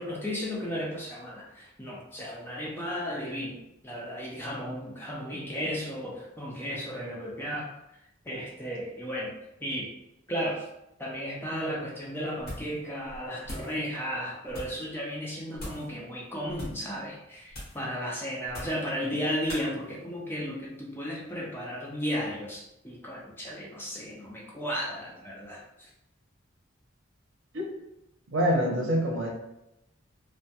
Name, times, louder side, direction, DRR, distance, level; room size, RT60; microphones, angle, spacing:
voice 1, 0.0-7.7 8.2-9.3 9.6-9.9 10.3-10.7 11.0-25.9, equal, 10° left, -4 dB, 0.4 m, -34 dB
sound 1, 12.4-12.8 13.1-13.8 14.5-14.8 15.5-15.9 16.5-16.9 17.5-17.8 18.5-18.9 19.5-19.7, equal, 50° left, 1.0 m, -41 dB
voice 2, 28.3-29.3, equal, 80° right, -1 dB, 0.6 m, -25 dB
2.2 x 2.1 x 2.7 m, 0.85 s
head